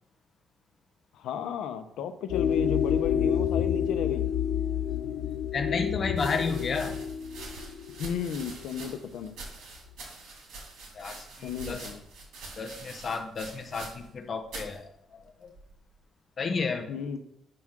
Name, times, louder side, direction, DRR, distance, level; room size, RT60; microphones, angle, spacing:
voice 1, 1.1-4.3 8.0-9.4 11.4-12.0 16.9-17.2, left 7 dB, 85° left, 9 dB, 0.7 m, -34 dB
sound 1, 2.3-8.8, left 9 dB, 70° left, 0.4 m, -29 dB
voice 2, 5.0-7.0 10.9-11.9 12.6-15.5 16.4-16.9, left 4 dB, 35° left, 5 dB, 0.7 m, -32 dB
sound 2, 5.0-5.1 6.1-14.2 14.5-14.8 15.5-16.0, right 3 dB, 85° right, 2.7 m, -45 dB
8.7 x 6.0 x 3.7 m, 0.76 s
cardioid pair, 150°, 0 cm